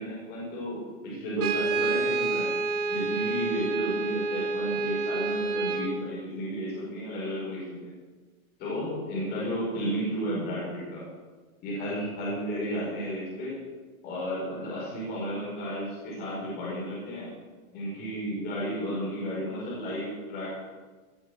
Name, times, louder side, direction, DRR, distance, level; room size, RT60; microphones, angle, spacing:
voice 1, 0.0-2.5 2.9-7.9 8.6-11.0 11.6-13.6 14.0-17.3 17.7-20.5, equal, 20° left, -7 dB, 5.3 m, -33 dB
Brass instrument, 1.4-5.9, right 4 dB, 80° right, 2.7 m, -28 dB
17.5 x 7.5 x 8.1 m, 1.3 s
supercardioid pair, 175°, 44 cm